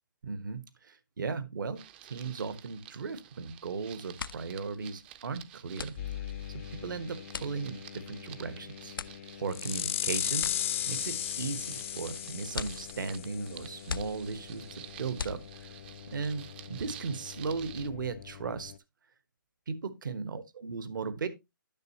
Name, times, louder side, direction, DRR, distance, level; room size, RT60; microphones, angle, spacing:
voice 1, 0.2-1.8 2.1-6.0 6.5-8.9 9.4-10.5 10.9-14.7 15.0-15.8 16.1-18.7 19.7-21.3, right 4 dB, 65° right, 1.2 m, -36 dB
sound 1, 1.8-17.9, right 12 dB, 30° right, 0.5 m, -51 dB
sound 2, 3.5-3.7 4.0-15.9, left 6 dB, 85° left, 0.5 m, -43 dB
sound 3, 6.0-18.8, left 11 dB, 40° left, 0.5 m, -38 dB
10.5 x 6.2 x 2.8 m
hypercardioid pair, 150°, 11 cm